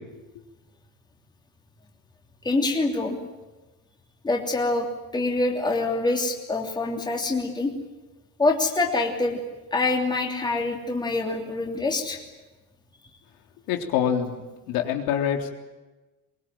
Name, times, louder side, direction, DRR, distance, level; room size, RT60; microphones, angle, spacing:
voice 1, 2.4-3.2 4.2-4.9 5.1-7.7 8.4-9.4 9.7-12.2, left 2 dB, 10° left, 1 dB, 3.1 m, -25 dB
voice 2, 13.7-14.4 14.7-15.5, left 9 dB, 85° left, 3 dB, 3.6 m, -25 dB
23.0 x 23.0 x 9.3 m, 1.2 s
cardioid pair, 175°, 34 cm